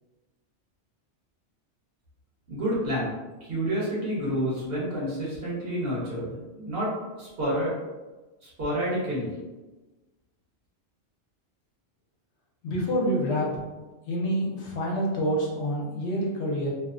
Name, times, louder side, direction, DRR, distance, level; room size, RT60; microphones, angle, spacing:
voice 1, 2.5-3.1 3.4-6.9 7.2-7.7 8.4-9.3, equal, 60° right, -8 dB, 1.2 m, -29 dB
voice 2, 12.6-13.5 14.1-16.7, equal, 75° left, -3 dB, 0.9 m, -27 dB
2.7 x 2.0 x 2.4 m, 1.2 s
omnidirectional pair, 1.2 m